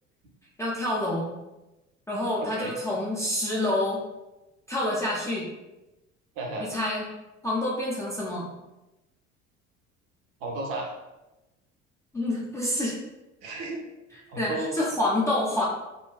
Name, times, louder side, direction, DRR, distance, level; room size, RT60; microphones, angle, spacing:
voice 1, 0.6-1.3 2.1-4.0 4.7-5.5 6.7-7.0 7.4-8.5 12.1-13.0 14.4-14.5 14.8-15.6, left 1 dB, 10° left, -6 dB, 0.4 m, -27 dB
voice 2, 2.4-2.7 6.4-6.7 10.4-10.9 13.4-13.8 14.3-14.8, right 2 dB, 50° right, 0 dB, 0.6 m, -33 dB
2.5 x 2.3 x 2.2 m, 1.0 s
figure-of-eight pair, 60°, 39 cm